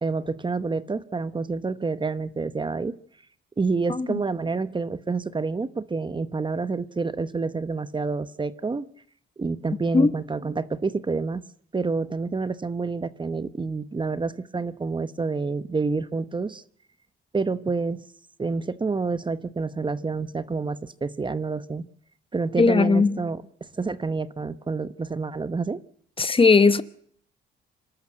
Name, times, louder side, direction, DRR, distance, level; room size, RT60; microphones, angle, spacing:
voice 1, 0.0-3.0 3.6-8.9 9.4-11.4 11.7-16.6 17.3-18.0 18.4-21.9 22.3-23.4 23.8-25.8, right 4 dB, 25° right, 1.0 m, -28 dB
voice 2, 3.9-4.2 9.9-10.1 22.6-23.2 26.2-26.8, left 4 dB, 25° left, 1.0 m, -18 dB
26.5 x 12.5 x 7.8 m
cardioid pair, 90°, 20 cm